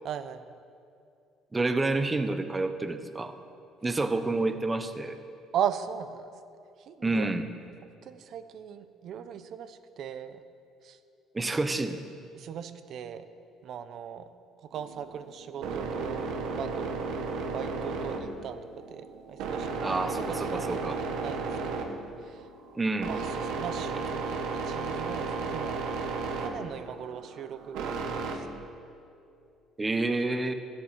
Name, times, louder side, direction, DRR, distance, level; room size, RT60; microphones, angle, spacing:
voice 1, 0.0-0.6 5.5-6.3 6.8-7.3 8.0-10.4 10.8-11.0 11.4-11.7 12.3-13.3 13.6-14.3 14.6-17.0 17.5-18.6 18.9-22.5 23.1-26.1 26.4-28.5, right 8 dB, 50° right, 11 dB, 0.7 m, -38 dB
voice 2, 1.5-3.3 3.8-5.2 7.0-7.4 11.3-12.0 19.8-21.0 22.7-23.1 29.8-30.5, right 2 dB, 15° right, 9 dB, 0.7 m, -28 dB
sound 1, 14.7-28.4, right 4 dB, 80° right, 1.4 m, -34 dB
13.5 x 8.2 x 7.3 m, 2.5 s
cardioid pair, 145°, 0 cm